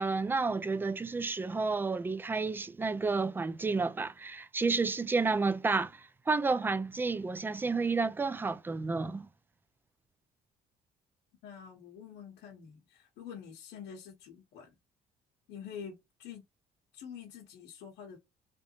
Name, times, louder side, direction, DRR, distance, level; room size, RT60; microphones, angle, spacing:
voice 1, 0.0-9.3, right 4 dB, 10° right, 0.3 m, -31 dB
voice 2, 11.4-14.7 15.5-15.9 16.2-16.4 16.9-18.2, left 7 dB, 85° left, 1.1 m, -46 dB
3.4 x 2.6 x 2.9 m
cardioid pair, 110°, 17 cm